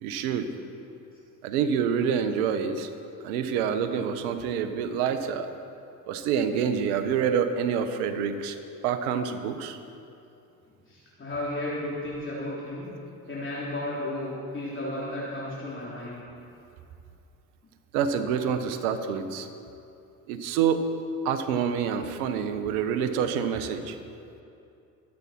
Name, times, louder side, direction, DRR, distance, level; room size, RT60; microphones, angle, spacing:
voice 1, 0.0-0.5 1.4-2.9 3.2-5.5 6.1-8.6 8.8-9.8 17.9-19.5 20.3-20.8 21.2-24.0, right 7 dB, 75° right, 9 dB, 1.2 m, -27 dB
voice 2, 10.9-12.9 13.3-16.2 23.5-23.6, left 1 dB, 25° left, -7 dB, 3.5 m, -33 dB
23.0 x 8.5 x 4.4 m, 2.6 s
hypercardioid pair, 60°, 44 cm